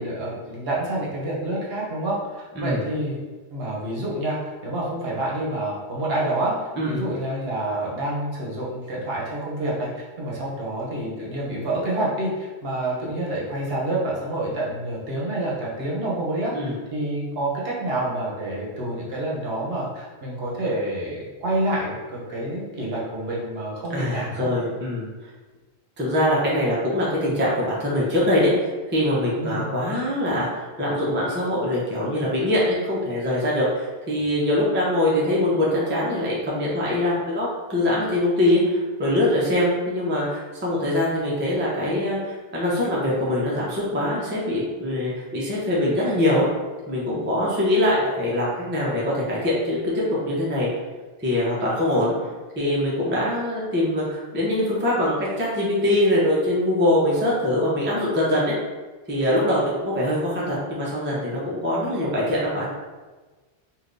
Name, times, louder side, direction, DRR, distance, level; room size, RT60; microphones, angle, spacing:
voice 1, 0.0-3.2 3.5-6.5 6.9-24.5 29.3-29.7, right 1 dB, 65° right, -4 dB, 0.9 m, -28 dB
voice 2, 23.9-25.1 26.0-30.5 30.8-46.4 46.9-50.7 51.2-52.1 52.6-58.5 59.1-62.7, left 1 dB, 15° right, -6 dB, 0.5 m, -23 dB
3.4 x 2.6 x 2.5 m, 1.3 s
omnidirectional pair, 1.2 m